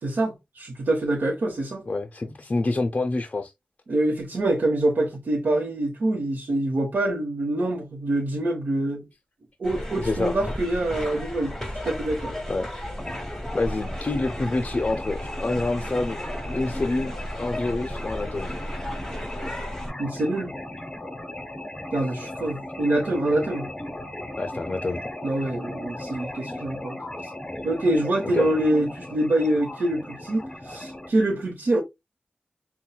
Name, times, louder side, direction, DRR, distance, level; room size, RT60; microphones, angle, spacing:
voice 1, 0.0-1.8 3.9-9.0 9.6-12.4 16.6-16.7 20.0-20.6 21.9-23.7 25.2-27.0 27.2-27.3 27.6-31.8, right 1 dB, 80° right, 0.9 m, -25 dB
voice 2, 1.9-3.5 10.0-10.3 12.5-12.7 13.5-16.2 16.5-18.5 24.4-25.0 28.3-28.6, left 2 dB, 45° left, 0.5 m, -27 dB
sound 1, 9.6-19.9, equal, 10° left, 1.5 m, -34 dB
sound 2, 13.0-31.1, left 1 dB, 25° left, 0.8 m, -37 dB
5.6 x 2.2 x 2.2 m
wide cardioid pair, 60°, 3 cm